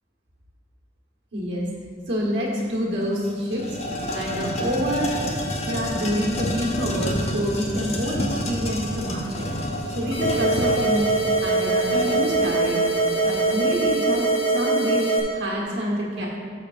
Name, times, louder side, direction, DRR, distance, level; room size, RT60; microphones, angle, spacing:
voice 1, 1.3-1.7 2.1-3.6 4.1-5.1 5.6-9.5 9.9-11.1 11.4-12.8 13.2-14.2 14.5-16.3, equal, 60° right, -4 dB, 1.7 m, -27 dB
sound 1, 2.6-2.7 3.0-13.7, left 1 dB, 30° left, 0.7 m, -29 dB
sound 2, 10.1-15.2, right 3 dB, 85° left, 1.6 m, -22 dB
6.9 x 5.9 x 5.0 m, 2.1 s
head